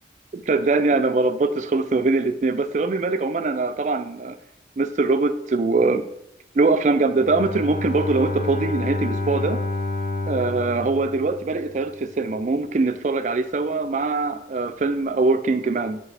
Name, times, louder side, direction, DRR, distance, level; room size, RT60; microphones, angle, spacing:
voice 1, 0.3-4.4 4.8-6.0 6.5-9.6 10.3-16.0, right 3 dB, 45° right, 11 dB, 0.4 m, -22 dB
Bowed string instrument, 7.2-11.9, left 2 dB, 75° left, 2.2 m, -29 dB
7.2 x 4.7 x 3.4 m, 0.80 s
head